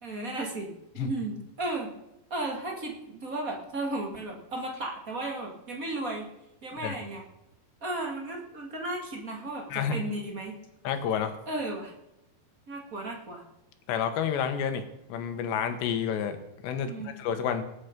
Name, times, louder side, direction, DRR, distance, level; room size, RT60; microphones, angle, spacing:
voice 1, 0.0-1.9 2.3-6.3 6.6-7.2 7.8-10.5 11.4-11.9 12.7-13.4 16.7-17.1, right 2 dB, 35° right, 1 dB, 1.4 m, -34 dB
voice 2, 10.9-11.4 13.9-14.8 15.1-16.4 16.6-17.6, left 8 dB, 80° left, 8 dB, 3.5 m, -29 dB
19.0 x 9.5 x 5.2 m, 0.87 s
omnidirectional pair, 5.0 m